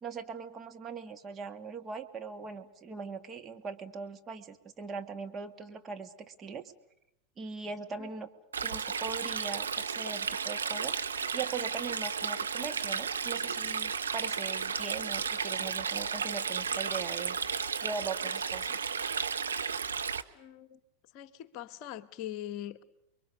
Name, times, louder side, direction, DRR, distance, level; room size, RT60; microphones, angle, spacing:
voice 1, 0.0-6.7 7.4-8.3 8.6-11.0 11.3-17.4 17.8-18.9, right 5 dB, 25° right, 1.9 m, -40 dB
Stream, 8.5-20.2, right 6 dB, 75° right, 1.1 m, -33 dB
voice 2, 20.3-20.8 21.1-22.8, left 12 dB, 45° left, 1.0 m, -42 dB
30.0 x 22.5 x 6.6 m
figure-of-eight pair, 90°, 0 cm